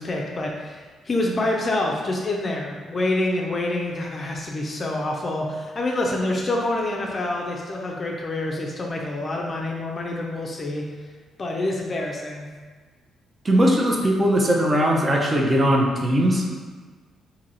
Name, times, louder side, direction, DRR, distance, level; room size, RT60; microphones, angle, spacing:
voice 1, 0.0-10.9 11.4-12.5, left 2 dB, 35° left, -1 dB, 0.4 m, -27 dB
voice 2, 13.4-16.5, equal, 25° right, -1 dB, 0.6 m, -19 dB
2.8 x 2.7 x 3.9 m, 1.4 s
cardioid pair, 90°, 0 cm